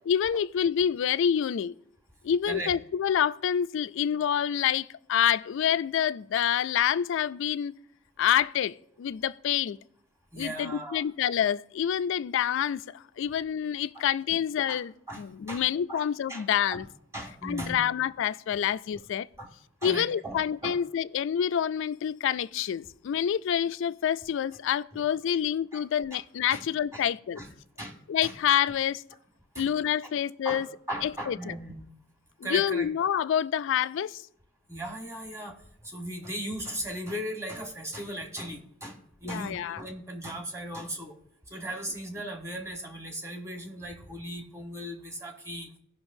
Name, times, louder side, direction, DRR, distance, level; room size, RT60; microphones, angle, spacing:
voice 1, 0.1-1.7 2.2-7.7 8.2-9.8 10.4-16.8 17.4-19.3 19.8-27.4 28.1-29.0 29.6-30.7 31.0-31.5 32.4-34.2 39.2-39.8, left 9 dB, 65° left, 0.3 m, -27 dB
voice 2, 10.3-11.0 13.9-14.0 14.7-14.8 15.1-16.0 16.3-16.5 16.7-16.8 17.1-17.9 19.4-19.5 19.8-20.8 24.9-25.0 25.7-25.8 26.1-26.2 26.5-26.6 26.9-27.0 27.4-27.5 27.8-28.0 28.2-28.4 29.5-29.7 30.4-31.8 32.4-32.9 34.7-35.5 35.8-41.1 41.5-45.7, right 1 dB, 15° right, 1.2 m, -37 dB
16.5 x 5.7 x 2.6 m
head